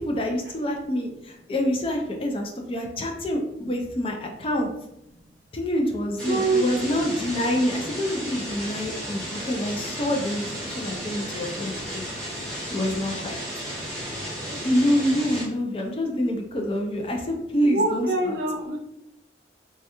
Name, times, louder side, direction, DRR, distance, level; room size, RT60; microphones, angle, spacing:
voice 1, 0.0-4.7 5.5-12.0 12.7-13.4 14.6-18.1, equal, 30° left, 1 dB, 0.4 m, -26 dB
sound 1, 6.2-15.4, equal, 5° left, 0.9 m, -34 dB
voice 2, 6.2-6.7 17.6-18.8, right 2 dB, 70° right, 1 dB, 0.5 m, -25 dB
3.2 x 2.2 x 2.9 m, 0.86 s
head